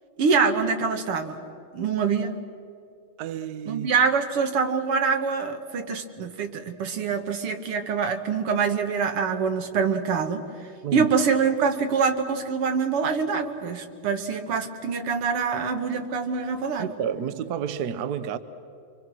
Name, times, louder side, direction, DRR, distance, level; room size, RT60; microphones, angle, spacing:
voice 1, 0.2-1.4 1.7-2.3 3.7-10.5 10.9-16.9, right 5 dB, 85° right, 2.4 m, -25 dB
voice 2, 3.2-3.9 10.8-11.1 16.8-18.4, right 8 dB, 60° right, 1.2 m, -30 dB
27.0 x 24.5 x 6.2 m
omnidirectional pair, 2.4 m